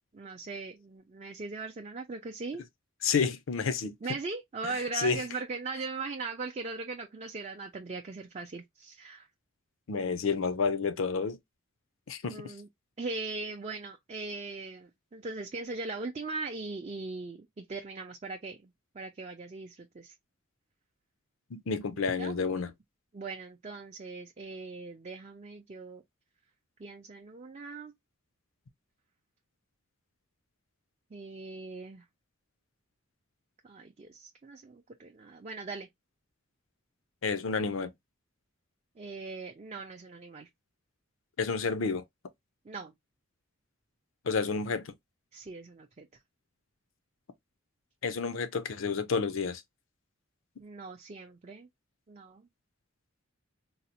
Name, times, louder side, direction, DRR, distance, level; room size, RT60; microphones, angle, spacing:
voice 1, 0.1-2.6 3.8-9.3 12.3-12.7 13.0-20.1 22.0-22.3 23.1-26.0 26.8-27.9 31.1-32.0 33.6-35.9 39.0-40.5 42.6-42.9 45.3-46.1 50.6-51.7 52.1-52.5, right 3 dB, 35° right, 0.4 m, -40 dB
voice 2, 3.0-3.9 5.0-5.2 9.9-11.4 12.1-12.4 21.5-22.7 37.2-37.9 41.4-42.0 44.3-44.9 48.0-49.6, left 5 dB, 75° left, 0.5 m, -30 dB
3.9 x 2.0 x 2.8 m
head